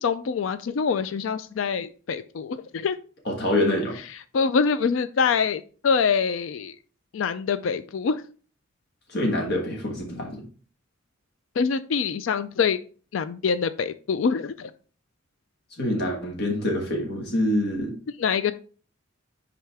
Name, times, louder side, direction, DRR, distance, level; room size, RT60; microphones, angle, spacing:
voice 1, 0.0-3.0 4.3-6.7 7.1-8.2 11.6-12.8 13.1-14.7 18.2-18.5, left 5 dB, 80° left, 12 dB, 0.4 m, -25 dB
voice 2, 3.2-4.0 9.1-10.4 15.8-18.0, left 1 dB, 55° left, 0 dB, 1.5 m, -25 dB
10.0 x 3.8 x 3.4 m, 0.39 s
head